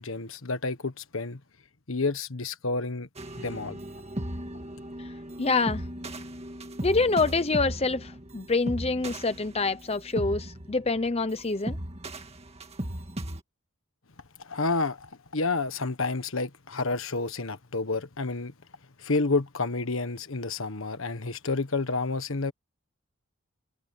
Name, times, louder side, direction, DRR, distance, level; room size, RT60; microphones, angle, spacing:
voice 1, 0.0-1.4 1.9-3.1 3.4-3.8 14.4-18.5 19.0-22.5, left 3 dB, 70° left, 1.4 m, -30 dB
sound 1, 3.2-13.4, right 1 dB, 30° right, 2.0 m, -37 dB
voice 2, 5.4-5.8 6.8-11.8, left 3 dB, 30° left, 0.8 m, -26 dB
head